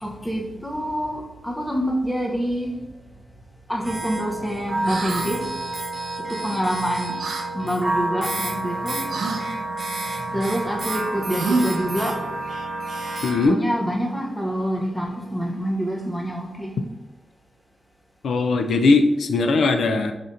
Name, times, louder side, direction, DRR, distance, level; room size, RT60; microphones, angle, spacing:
voice 1, 0.0-2.7 3.7-5.4 6.3-7.1 7.5-9.0 10.3-12.2 13.5-16.7, equal, 5° left, 0 dB, 0.7 m, -26 dB
sound 1, 3.8-13.5, right 2 dB, 45° right, 1.3 m, -29 dB
sound 2, 4.8-5.3 7.2-7.5 9.1-9.4 11.4-11.9, right 3 dB, 80° right, 0.5 m, -26 dB
voice 2, 13.2-13.6 18.2-20.1, left 3 dB, 85° left, 6 dB, 0.4 m, -19 dB
5.0 x 4.2 x 2.5 m, 0.98 s
wide cardioid pair, 155°, 0 cm